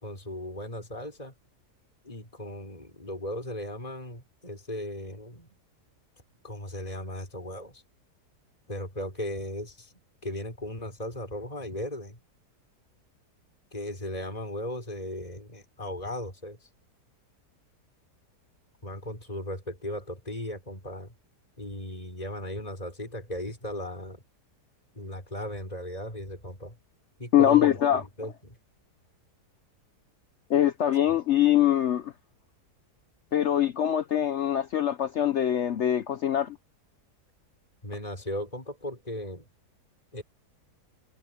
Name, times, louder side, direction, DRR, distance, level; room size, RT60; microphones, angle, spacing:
voice 1, 0.0-1.3 2.0-5.5 6.4-7.8 8.7-9.9 10.2-12.2 13.7-16.7 18.8-21.1 21.6-24.2 24.9-26.8 27.2-28.6 37.8-39.4 40.1-40.2, left 1 dB, 20° left, 5.6 m, -37 dB
voice 2, 27.3-28.0 30.5-32.1 33.3-36.6, left 11 dB, 65° left, 0.7 m, -23 dB
omnidirectional pair, 1.8 m